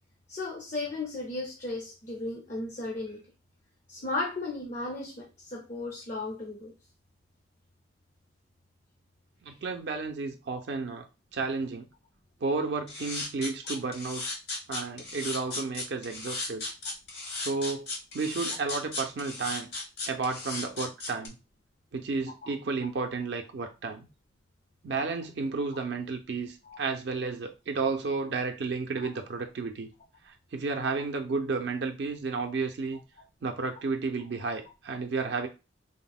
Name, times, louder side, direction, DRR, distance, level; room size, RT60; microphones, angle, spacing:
voice 1, 0.3-3.2 3.9-6.7 10.5-10.6 22.4-22.5 26.6-26.8 29.0-29.1, left 2 dB, 40° left, 0.5 m, -35 dB
voice 2, 9.4-11.1 11.3-11.9 12.4-14.3 14.7-16.6 17.4-17.9 18.1-19.7 20.1-21.4 21.9-24.1 24.8-29.9 30.2-33.0 33.4-35.5, right 4 dB, 70° right, 0.4 m, -32 dB
sound 1, 12.9-21.3, left 2 dB, 60° left, 0.9 m, -36 dB
3.5 x 2.0 x 2.3 m
head